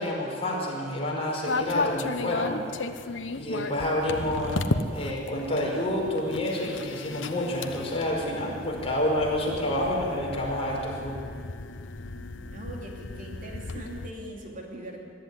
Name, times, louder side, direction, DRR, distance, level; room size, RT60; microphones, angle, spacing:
voice 1, 0.0-2.6 3.3-4.6 4.9-11.2, left 1 dB, 35° left, -3 dB, 5.3 m, -28 dB
sound 1, 1.5-14.1, left 3 dB, 85° left, 1.0 m, -34 dB
voice 2, 12.1-15.1, right 1 dB, 45° right, 0 dB, 3.0 m, -41 dB
22.0 x 13.5 x 9.9 m, 2.3 s
head